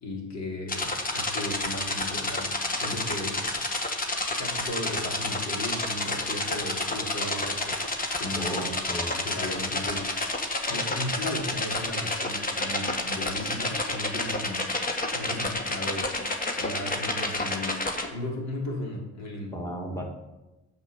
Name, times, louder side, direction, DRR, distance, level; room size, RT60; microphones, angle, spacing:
voice 1, 0.0-3.5 4.4-7.8 8.2-8.7 9.2-10.3 10.7-14.7 15.1-16.2 16.6-19.6, left 1 dB, 65° left, -1 dB, 3.5 m, -35 dB
sound 1, 0.7-18.1, left 2 dB, 30° left, 1.6 m, -30 dB
voice 2, 8.4-9.2 10.7-10.8 19.5-20.0, right 1 dB, 10° left, 1 dB, 2.5 m, -35 dB
8.9 x 6.9 x 7.1 m, 1.1 s
cardioid pair, 90°, 30 cm